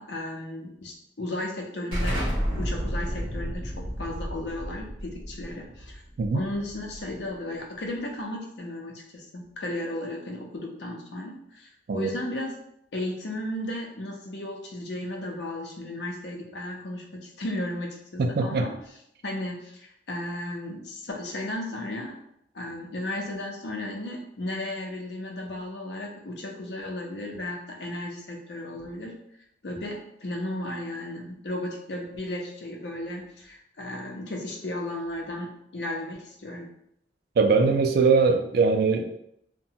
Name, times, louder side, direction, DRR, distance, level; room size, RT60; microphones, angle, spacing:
voice 1, 0.0-6.0 6.3-11.7 11.9-12.6 12.9-18.8 19.2-22.2 22.5-29.2 29.6-36.7, left 1 dB, 70° left, 0 dB, 0.6 m, -35 dB
Explosion, 1.9-7.3, equal, 30° right, 1.2 m, -31 dB
voice 2, 18.2-18.7 37.4-39.2, right 4 dB, 55° right, 5 dB, 0.3 m, -21 dB
2.8 x 2.2 x 2.7 m, 0.75 s
head